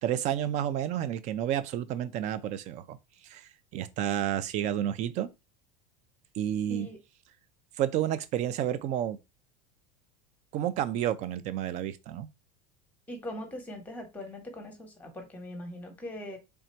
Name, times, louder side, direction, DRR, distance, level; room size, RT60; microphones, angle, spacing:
voice 1, 0.0-3.0 3.3-3.4 3.7-5.3 6.4-6.9 7.8-9.2 10.5-12.3, right 11 dB, 40° right, 0.5 m, -30 dB
voice 2, 13.1-16.4, left 1 dB, 10° left, 1.2 m, -41 dB
3.4 x 2.6 x 4.4 m
supercardioid pair, 150°, 19 cm